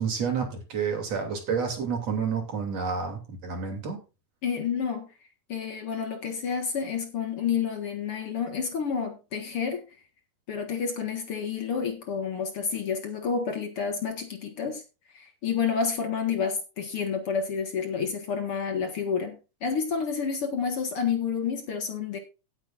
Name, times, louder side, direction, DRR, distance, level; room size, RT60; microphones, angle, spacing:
voice 1, 0.0-4.0, right 6 dB, 55° right, 3 dB, 4.0 m, -29 dB
voice 2, 4.4-5.1 5.5-9.8 10.5-14.8 15.1-22.2, left 6 dB, 50° left, 5 dB, 2.3 m, -29 dB
18.0 x 8.3 x 2.5 m, 0.29 s
omnidirectional pair, 3.4 m